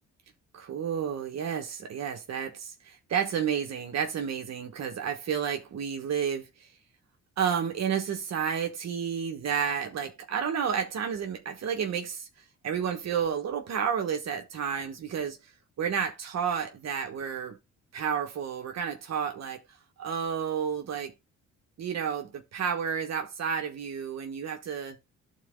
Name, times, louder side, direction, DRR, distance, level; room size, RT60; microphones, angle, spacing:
voice 1, 0.5-6.7 7.4-12.3 12.6-15.5 15.8-17.6 17.9-21.1 21.8-25.0, right 7 dB, 60° right, 1.3 m, -31 dB
11.5 x 4.2 x 3.7 m
cardioid pair, 90°, 30 cm